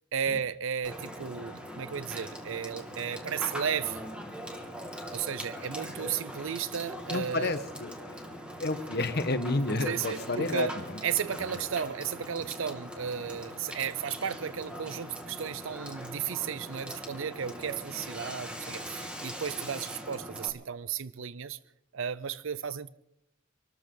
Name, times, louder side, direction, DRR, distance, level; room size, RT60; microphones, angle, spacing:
voice 1, 0.1-4.0 5.1-7.5 9.8-10.7 11.0-21.6 21.9-22.9, right 7 dB, 70° right, 0.6 m, -34 dB
Water / Water tap faucet / Sink (filling or washing), 0.8-20.5, equal, 5° right, 2.0 m, -41 dB
voice 2, 7.1-8.2 8.6-11.0, left 2 dB, 50° left, 1.3 m, -31 dB
26.0 x 13.5 x 3.9 m
head